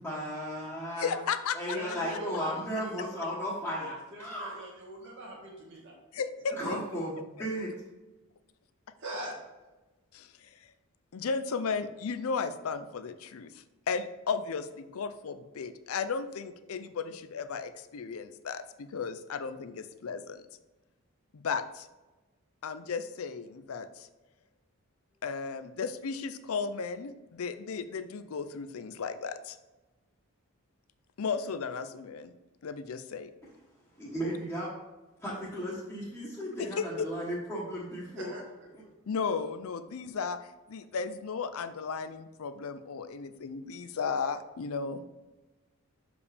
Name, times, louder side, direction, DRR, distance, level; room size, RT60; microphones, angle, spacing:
voice 1, 0.0-1.2 1.5-4.6 6.5-7.7 34.0-34.7 35.2-38.3, equal, 10° left, -10 dB, 1.2 m, -35 dB
voice 2, 1.0-1.8 6.1-6.8 10.1-10.6 11.1-20.4 21.3-21.9 22.6-24.1 25.2-29.6 31.2-32.3 32.6-33.3 36.6-37.1 39.1-45.0, left 5 dB, 65° left, 12 dB, 0.5 m, -35 dB
voice 3, 1.7-2.5 2.8-3.0 4.1-5.9 6.5-6.6 9.0-9.4 38.2-38.4, right 1 dB, 55° right, -2 dB, 1.7 m, -41 dB
6.7 x 4.9 x 3.4 m, 1.1 s
head